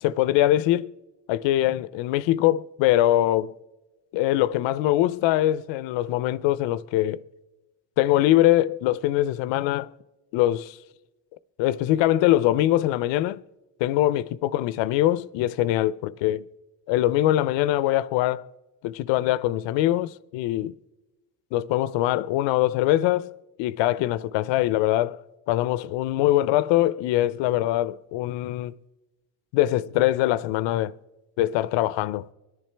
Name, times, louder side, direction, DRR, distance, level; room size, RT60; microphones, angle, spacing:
voice 1, 0.0-0.9 1.3-3.5 4.1-7.2 8.0-9.9 10.3-10.8 11.6-13.4 13.8-16.4 16.9-18.5 18.8-20.8 21.5-28.8 29.5-31.0 31.4-32.3, left 14 dB, 85° left, 0.6 m, -23 dB
24.0 x 10.5 x 3.3 m
cardioid pair, 160°, 43 cm